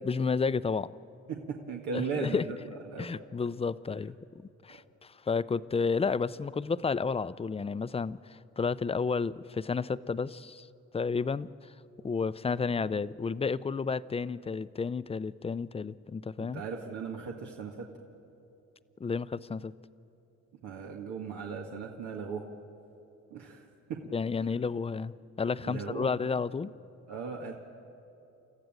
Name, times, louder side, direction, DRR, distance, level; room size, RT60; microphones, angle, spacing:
voice 1, 0.0-0.9 1.9-2.5 3.0-4.1 4.6-10.7 10.9-11.7 12.0-16.6 19.0-19.7 24.1-26.7, left 5 dB, 20° left, 16 dB, 0.5 m, -31 dB
voice 2, 1.3-2.6 2.9-3.1 16.4-17.9 20.6-22.4 23.3-24.0 25.6-26.1 27.1-27.5, right 5 dB, 90° right, 0 dB, 1.8 m, -37 dB
29.5 x 14.0 x 9.0 m, 2.8 s
cardioid pair, 90°, 30 cm